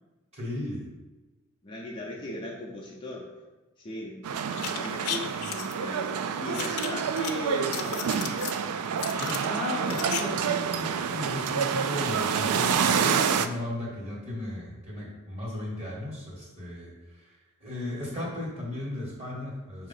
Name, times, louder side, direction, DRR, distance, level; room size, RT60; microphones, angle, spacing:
voice 1, 0.3-0.8 9.2-19.9, left 1 dB, 30° right, -4 dB, 1.6 m, -35 dB
voice 2, 1.6-3.3 3.8-8.2, left 1 dB, 20° left, -3 dB, 0.6 m, -38 dB
sound 1, 4.2-13.5, right 7 dB, 85° right, 0.4 m, -28 dB
sound 2, 4.5-5.7 6.5-7.3 7.6-8.6 9.0-10.2 10.5-10.6, left 9 dB, 85° left, 0.5 m, -35 dB
6.1 x 2.8 x 5.6 m, 1.2 s
head